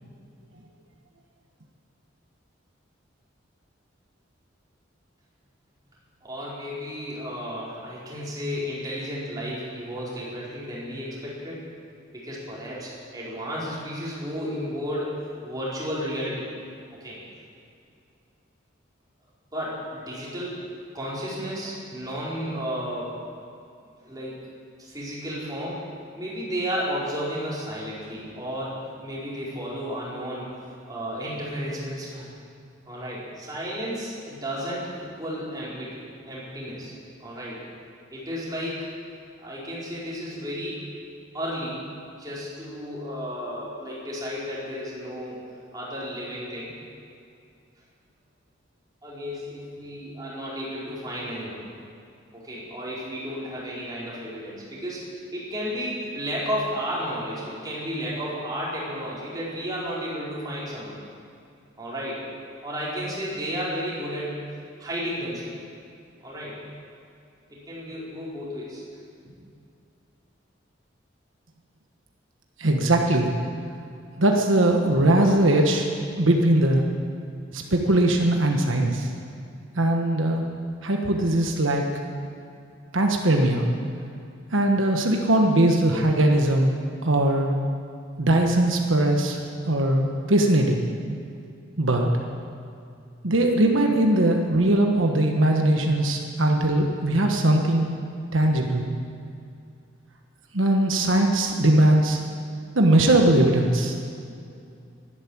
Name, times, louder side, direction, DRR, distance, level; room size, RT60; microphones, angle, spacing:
voice 1, 6.2-11.6 12.1-16.4 17.0-17.2 19.5-20.6 20.9-23.2 24.0-24.3 24.8-25.8 26.1-30.5 30.9-32.4 32.9-36.9 37.2-37.6 38.1-38.8 39.4-40.8 41.3-41.8 42.2-45.4 45.7-46.7 49.0-51.6 52.3-55.1 55.3-61.0 61.8-62.2 62.6-64.4 64.8-65.5 66.2-66.6 67.5-68.8, equal, 20° right, -7 dB, 4.5 m, -33 dB
voice 2, 72.6-73.3 74.2-75.8 76.2-76.8 77.5-79.1 79.8-80.4 80.8-81.8 82.9-83.7 84.5-86.7 87.0-87.5 88.2-89.4 89.7-90.8 91.8-92.1 93.2-97.9 98.3-98.8 100.5-102.2 102.7-104.0, right 1 dB, 85° right, 2 dB, 1.4 m, -20 dB
12.0 x 12.0 x 8.8 m, 2.5 s
head